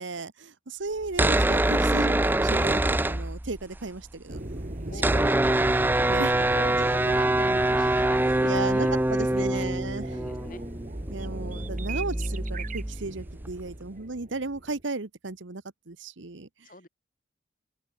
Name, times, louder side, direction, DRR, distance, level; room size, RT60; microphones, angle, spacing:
voice 1, 0.0-4.4 5.1-5.3 6.1-6.4 7.4-7.5 8.4-10.1 11.1-16.5, right 3 dB, 75° right, 1.2 m, -35 dB
sound 1, 1.0-3.8 4.0-4.1 4.3-13.7, right 1 dB, 10° right, 0.4 m, -25 dB
sound 2, 4.3-14.8, right 1 dB, 40° right, 1.7 m, -39 dB
voice 2, 4.9-5.7 6.0-9.7 10.1-10.6 16.6-16.9, left 2 dB, 45° left, 5.9 m, -43 dB
open air
head